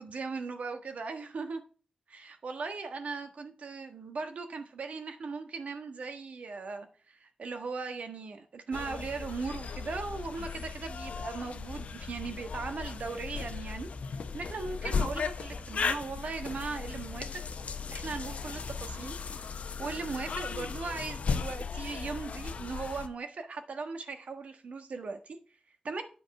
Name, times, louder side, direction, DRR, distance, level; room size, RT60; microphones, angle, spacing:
voice 1, 0.0-1.6 2.1-13.9 14.3-17.4 17.9-19.2 19.8-25.4 25.8-26.0, right 4 dB, 75° right, 6 dB, 1.4 m, -38 dB
sound 1, 8.7-23.1, left 5 dB, 75° left, 0.8 m, -36 dB
9.4 x 5.4 x 5.5 m, 0.39 s
wide cardioid pair, 95°, 2 cm